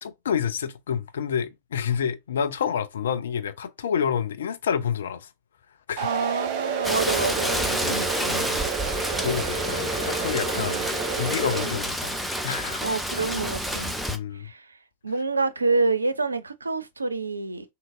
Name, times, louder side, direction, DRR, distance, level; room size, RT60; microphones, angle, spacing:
voice 1, 0.0-5.3 5.9-6.1 7.8-8.1 9.2-10.8 11.2-12.2 12.4-12.8 14.1-14.5, left 7 dB, 65° left, 0.4 m, -28 dB
sound 1, 6.0-11.7, right 5 dB, 45° right, 0.9 m, -30 dB
voice 2, 6.0-8.6 10.5-11.0 11.5-11.8 12.8-13.9 14.3-14.7 15.0-17.7, right 3 dB, 80° right, 0.4 m, -28 dB
Rain, 6.8-14.2, equal, ahead, 0.6 m, -29 dB
3.7 x 2.7 x 2.5 m
figure-of-eight pair, 90°, 0 cm